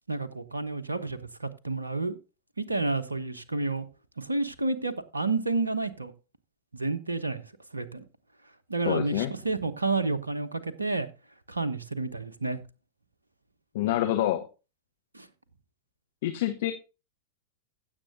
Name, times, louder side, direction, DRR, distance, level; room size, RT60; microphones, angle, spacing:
voice 1, 0.1-2.2 2.6-3.9 4.2-6.1 6.7-7.4 7.7-8.0 8.7-11.1 11.5-12.6 15.1-15.3, right 3 dB, 80° right, 1.0 m, -30 dB
voice 2, 8.8-9.3 13.7-14.5 16.2-16.7, left 13 dB, 55° left, 1.0 m, -27 dB
16.0 x 7.5 x 2.6 m
figure-of-eight pair, 90°, 0 cm